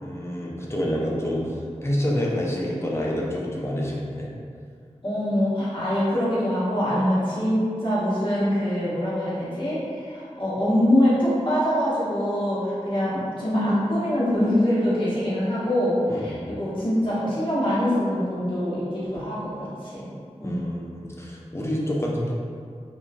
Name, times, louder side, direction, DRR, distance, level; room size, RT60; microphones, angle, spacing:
voice 1, 0.0-4.3 16.1-16.4 20.4-22.3, equal, 20° left, -4 dB, 0.4 m, -28 dB
voice 2, 5.0-20.1 20.4-20.8, equal, 45° left, -11 dB, 1.0 m, -24 dB
2.8 x 2.5 x 2.2 m, 2.3 s
wide cardioid pair, 65°, 12 cm